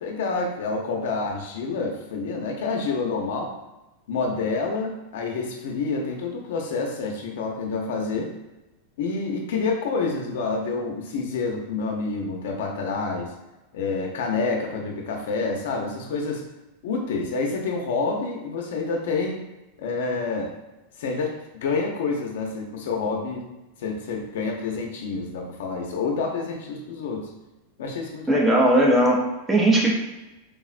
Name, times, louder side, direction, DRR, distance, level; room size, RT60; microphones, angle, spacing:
voice 1, 0.0-3.5 4.1-8.3 9.0-13.3 13.7-16.5 16.8-19.4 19.8-20.5 21.0-23.5 23.8-27.3 27.8-28.4, left 4 dB, 75° left, 1 dB, 0.6 m, -28 dB
voice 2, 28.3-29.9, right 1 dB, 10° right, -2 dB, 0.5 m, -18 dB
3.4 x 2.1 x 2.4 m, 1.0 s
supercardioid pair, 155°, 0 cm